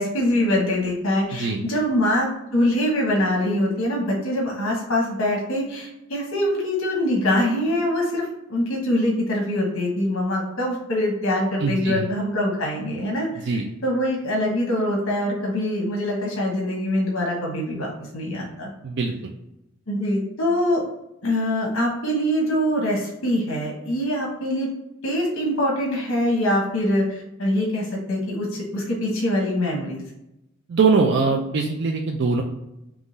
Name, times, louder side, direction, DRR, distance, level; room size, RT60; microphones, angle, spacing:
voice 1, 0.0-18.7 19.9-20.8 21.2-24.7 25.0-30.0, left 1 dB, 75° left, -2 dB, 1.1 m, -24 dB
voice 2, 11.6-12.0 13.5-13.6 18.8-19.3 30.7-32.4, right 4 dB, 55° right, 2 dB, 0.4 m, -22 dB
3.7 x 3.0 x 3.9 m, 0.88 s
head